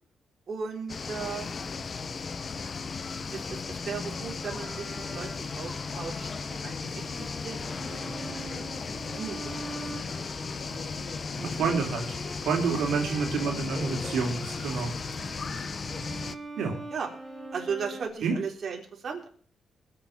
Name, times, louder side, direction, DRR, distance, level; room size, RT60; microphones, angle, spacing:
voice 1, 0.5-1.5 3.3-8.5 9.1-9.6 9.9-10.0 11.2-11.6 16.1-16.4 16.9-17.1 17.5-19.3, right 6 dB, 50° right, 2 dB, 4.0 m, -37 dB
sound 1, 0.9-16.4, left 4 dB, 40° left, 1.0 m, -36 dB
Bowed string instrument, 4.6-18.1, right 2 dB, 10° right, 3.2 m, -44 dB
voice 2, 11.4-12.1 12.4-14.9 16.6-16.8 18.2-18.3, right 5 dB, 85° right, 2 dB, 3.6 m, -28 dB
21.5 x 7.8 x 5.8 m, 0.43 s
cardioid pair, 115°, 0 cm